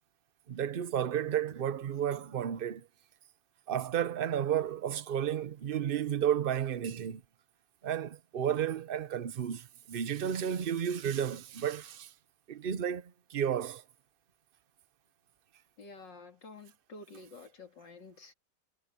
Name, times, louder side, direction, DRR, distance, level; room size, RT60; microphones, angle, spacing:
voice 1, 0.5-2.9 3.7-7.2 7.8-12.1 12.5-13.8, right 9 dB, 50° right, 0.6 m, -32 dB
voice 2, 15.8-18.3, left 3 dB, 85° left, 3.6 m, -50 dB
omnidirectional pair, 1.9 m